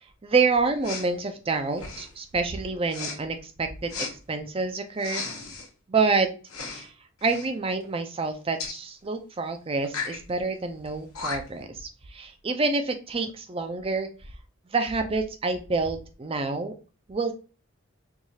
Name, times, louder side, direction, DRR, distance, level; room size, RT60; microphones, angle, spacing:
voice 1, 0.2-3.9 4.3-5.2 5.9-6.3 6.7-6.9 7.2-14.1 14.7-16.7 17.1-17.3, right 4 dB, 25° right, 7 dB, 0.4 m, -27 dB
Respiratory sounds, 0.8-1.1 1.7-2.2 2.9-3.2 3.9-4.1 5.0-5.7 6.5-6.9 7.2-7.5 8.6-8.8 9.8-10.2 10.9-11.0 11.1-11.6, left 4 dB, 80° left, 1.0 m, -35 dB
4.6 x 2.4 x 2.7 m, 0.35 s
head